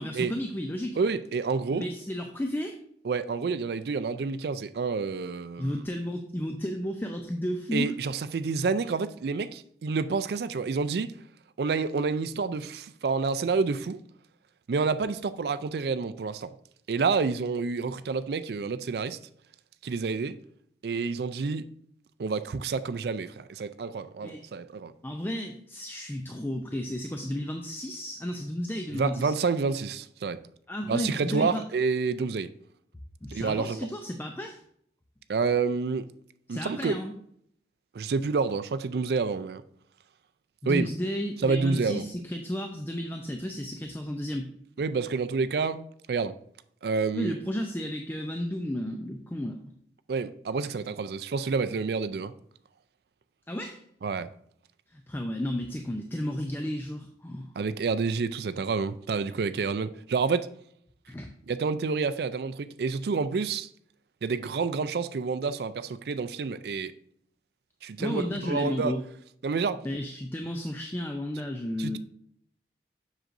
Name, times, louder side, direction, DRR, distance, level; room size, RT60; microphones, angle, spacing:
voice 1, 0.0-1.0 1.7-2.8 5.6-7.9 24.2-24.4 25.0-29.3 30.7-31.6 33.2-34.6 36.5-37.1 40.6-44.5 47.1-49.7 53.5-53.8 54.9-57.5 61.1-61.3 68.0-69.0 69.8-72.0, left 1 dB, 10° left, 0.4 m, -33 dB
voice 2, 1.0-1.9 3.0-5.8 7.7-11.1 11.6-14.0 14.7-16.5 16.9-19.2 19.8-20.4 20.8-21.6 22.2-24.9 28.9-30.4 30.9-32.5 33.3-33.9 35.3-36.1 36.5-36.9 37.9-39.6 40.7-40.9 41.4-42.1 44.8-46.3 46.8-47.4 50.1-52.3 54.0-54.3 57.6-60.5 61.5-63.7 64.2-66.9 67.8-69.0 69.4-69.8 71.8-72.0, right 4 dB, 65° right, 0.4 m, -28 dB
7.5 x 6.5 x 2.5 m
head